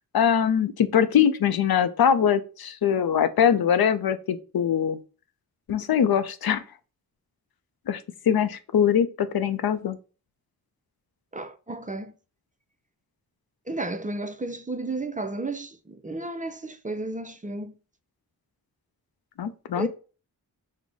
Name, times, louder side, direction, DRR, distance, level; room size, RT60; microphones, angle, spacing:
voice 1, 0.1-5.0 5.7-6.6 7.9-8.0 8.3-10.0 19.4-19.9, left 8 dB, 70° left, 0.5 m, -22 dB
voice 2, 11.3-12.1 13.7-17.7 19.8-19.9, right 2 dB, 20° right, 0.4 m, -33 dB
4.7 x 2.1 x 3.9 m
cardioid pair, 50°, 38 cm